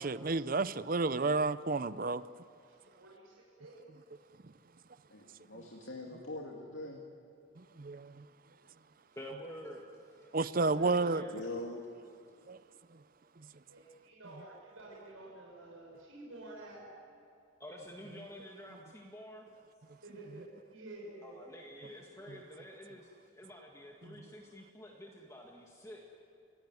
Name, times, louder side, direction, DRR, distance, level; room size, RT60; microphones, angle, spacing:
voice 1, 0.0-2.2 7.6-8.3 10.3-11.3 12.5-12.6 24.0-24.2, right 3 dB, 45° right, 0.6 m, -31 dB
voice 2, 2.6-3.9 10.5-11.0 12.3-12.4 13.7-16.8 20.0-22.2, right 2 dB, 85° right, 6.3 m, -51 dB
voice 3, 5.1-7.0 11.3-11.8, left 1 dB, 65° left, 2.3 m, -43 dB
voice 4, 9.1-9.8 10.2-10.3 10.6-11.3 17.6-19.5 21.2-26.0, equal, 15° left, 1.9 m, -49 dB
30.0 x 17.5 x 9.5 m
head